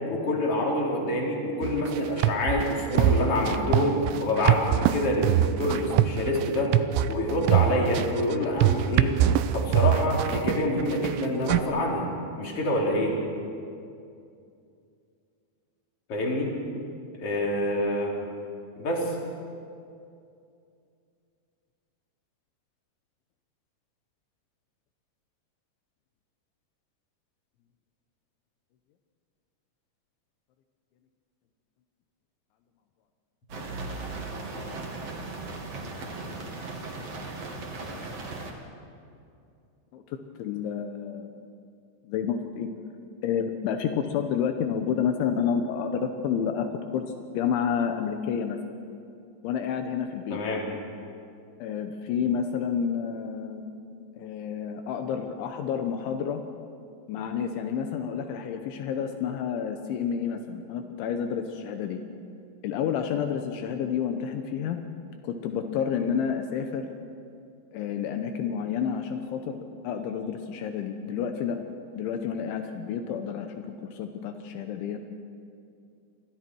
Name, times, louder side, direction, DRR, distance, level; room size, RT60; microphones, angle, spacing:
voice 1, 0.1-6.8 7.1-9.2 9.5-12.1 12.4-13.2 16.1-16.5 17.1-18.2 18.8-19.2 50.3-50.6, left 1 dB, 35° left, -2 dB, 4.0 m, -26 dB
sound 1, 1.6-11.6, right 12 dB, 90° right, 3.2 m, -23 dB
sound 2, 33.5-38.5, right 3 dB, 40° right, 2.6 m, -37 dB
voice 2, 39.9-41.5 42.0-42.7 43.2-46.7 46.9-47.0 47.3-48.6 49.4-50.4 51.6-53.6 54.1-56.4 57.1-62.0 62.6-64.8 65.2-66.9 67.7-71.6 72.0-73.5 73.8-75.0, left 7 dB, 80° left, 6 dB, 3.4 m, -29 dB
29.5 x 24.0 x 4.7 m, 2.5 s
omnidirectional pair, 5.4 m